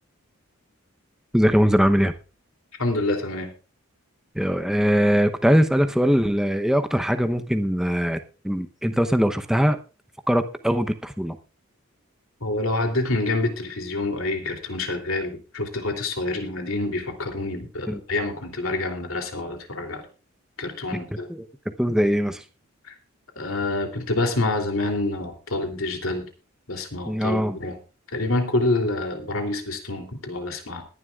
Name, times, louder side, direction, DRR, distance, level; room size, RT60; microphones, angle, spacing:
voice 1, 1.3-2.1 4.4-8.2 8.4-9.8 10.3-11.4 17.9-18.0 21.3-21.5 21.8-22.4 27.1-27.6, equal, ahead, 8 dB, 0.8 m, -21 dB
voice 2, 2.8-3.5 12.4-20.1 20.6-21.3 22.9-23.0 23.4-26.2 26.7-27.8 28.1-30.8, left 2 dB, 70° left, 5 dB, 3.1 m, -27 dB
21.0 x 11.0 x 2.4 m, 0.33 s
head